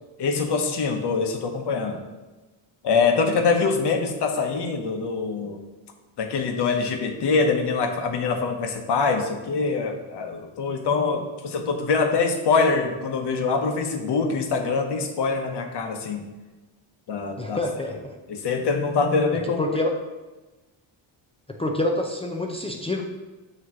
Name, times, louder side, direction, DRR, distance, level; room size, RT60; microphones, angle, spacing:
voice 1, 0.2-2.0 2.8-5.6 6.2-16.2 17.1-17.6 18.3-19.6, left 4 dB, 55° left, 4 dB, 1.1 m, -24 dB
voice 2, 17.4-18.1 19.6-19.9 21.5-23.0, left 1 dB, 10° left, 1 dB, 0.5 m, -27 dB
7.1 x 3.2 x 6.1 m, 1.2 s
cardioid pair, 120°, 48 cm